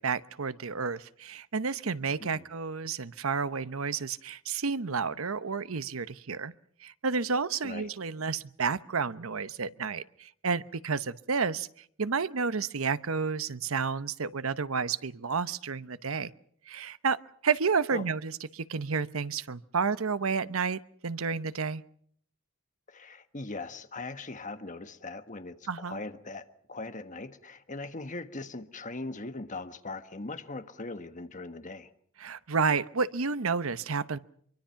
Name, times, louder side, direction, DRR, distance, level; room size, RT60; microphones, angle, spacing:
voice 1, 0.0-6.5 6.8-11.7 12.0-16.3 16.7-17.2 17.4-21.8 25.7-26.0 32.2-34.2, right 5 dB, 90° right, 15 dB, 0.9 m, -31 dB
voice 2, 22.9-31.9, left 3 dB, 40° left, 9 dB, 1.5 m, -40 dB
25.0 x 23.5 x 5.8 m, 0.62 s
head